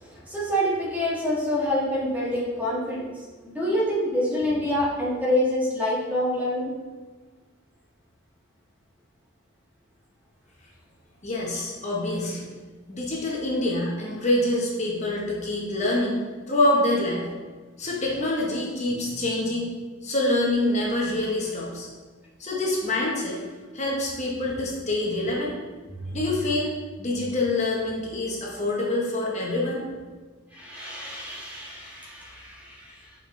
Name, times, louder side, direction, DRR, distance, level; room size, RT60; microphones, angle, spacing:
voice 1, 0.0-3.1 3.4-6.7 25.9-26.2 30.5-33.1, left 1 dB, 10° right, -7 dB, 1.6 m, -27 dB
voice 2, 11.2-12.4 12.9-16.2 16.5-17.2 17.8-19.7 20.0-21.9 22.4-23.4 23.7-25.6 26.1-29.8, left 1 dB, 35° left, -3 dB, 0.9 m, -26 dB
6.3 x 4.8 x 3.1 m, 1.4 s
head